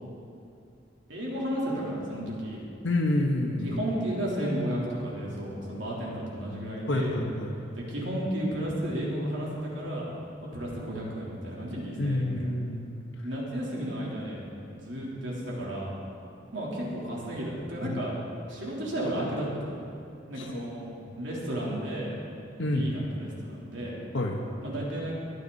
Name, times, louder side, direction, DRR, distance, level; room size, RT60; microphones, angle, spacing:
voice 1, 1.1-2.6 3.6-7.2 7.7-10.1 10.4-12.5 13.2-14.4 14.8-15.9 16.5-18.1 18.5-19.8 20.3-20.9 21.2-22.1 22.6-24.0 24.6-25.2, equal, 75° right, -5 dB, 3.5 m, -33 dB
voice 2, 2.8-3.7 6.9-7.6 12.0-13.0 17.8-18.0 20.4-20.6 22.6-22.9 24.1-24.4, left 1 dB, 85° left, 2 dB, 1.2 m, -28 dB
23.0 x 9.3 x 4.1 m, 2.5 s
head